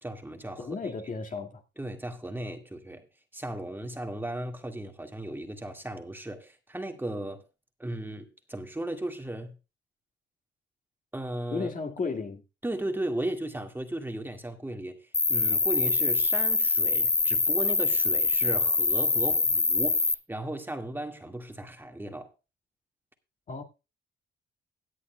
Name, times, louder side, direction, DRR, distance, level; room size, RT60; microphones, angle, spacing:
voice 1, 0.0-0.7 1.8-3.0 3.3-7.5 7.8-9.6 11.1-11.7 12.6-22.3, right 1 dB, 10° right, 1.9 m, -36 dB
voice 2, 0.6-1.6 11.5-12.4 23.5-23.6, left 4 dB, 40° left, 2.0 m, -34 dB
Cricket, 15.1-20.1, left 3 dB, 20° left, 0.6 m, -24 dB
17.5 x 9.7 x 2.3 m
cardioid pair, 90°, 20 cm